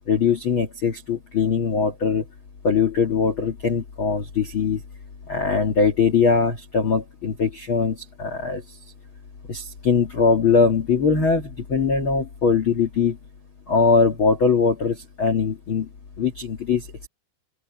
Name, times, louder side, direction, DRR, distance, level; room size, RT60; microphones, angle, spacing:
voice 1, 0.1-2.2 2.6-4.8 5.3-8.6 9.5-13.2 13.7-15.9 16.2-16.9, left 5 dB, 85° left, 1.1 m, -21 dB
open air
omnidirectional pair, 5.5 m